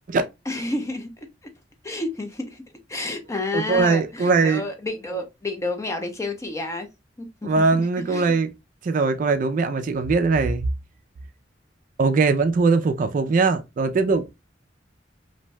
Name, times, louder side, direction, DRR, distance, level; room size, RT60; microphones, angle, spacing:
voice 1, 0.5-1.1 1.8-2.6 2.9-6.9 7.2-7.5 7.8-8.3, left 2 dB, 15° left, 0.5 m, -30 dB
voice 2, 3.5-4.6 7.4-8.5 8.8-10.6 12.0-14.2, right 4 dB, 45° right, 0.3 m, -21 dB
2.6 x 2.1 x 3.0 m
head